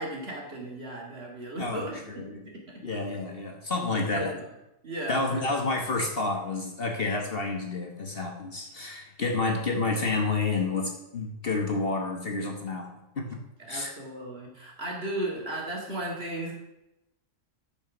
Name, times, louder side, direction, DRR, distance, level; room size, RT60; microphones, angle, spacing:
voice 1, 0.0-2.0 2.3-2.8 3.9-4.4 4.8-5.4 13.6-16.5, right 1 dB, 45° right, -1 dB, 2.5 m, -35 dB
voice 2, 1.6-2.4 2.8-4.3 5.1-13.4 13.7-13.9, left 3 dB, 45° left, 3 dB, 1.3 m, -30 dB
10.0 x 5.6 x 6.1 m, 0.91 s
omnidirectional pair, 1.4 m